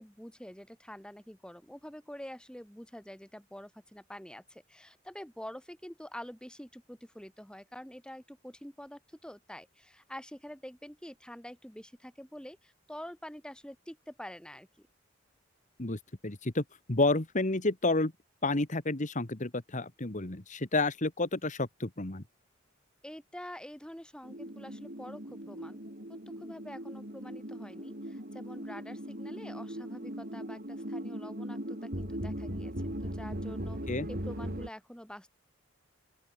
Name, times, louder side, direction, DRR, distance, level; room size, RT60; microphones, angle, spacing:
voice 1, 0.0-14.9 23.0-25.8 26.1-33.8 34.1-35.3, equal, 5° left, 3.9 m, -47 dB
voice 2, 15.8-16.6 16.9-18.1 18.4-22.2 33.9-34.1, left 2 dB, 40° left, 1.8 m, -30 dB
sound 1, 24.2-34.7, equal, 50° right, 7.8 m, -39 dB
open air
head